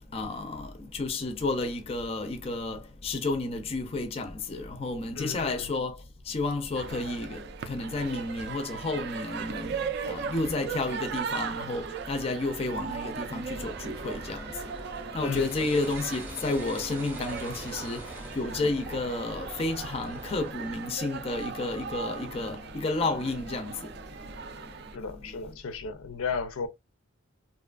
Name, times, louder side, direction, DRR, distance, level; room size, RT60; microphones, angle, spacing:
voice 1, 0.1-14.6 15.1-23.9 25.0-25.2, left 2 dB, 30° left, 0.4 m, -31 dB
voice 2, 5.2-5.7 15.2-15.5 24.9-26.7, left 5 dB, 85° left, 0.5 m, -34 dB
sound 1, 6.7-25.0, right 6 dB, 50° right, 0.3 m, -38 dB
sound 2, 13.5-20.5, right 1 dB, 10° right, 0.6 m, -43 dB
2.7 x 2.3 x 2.3 m
head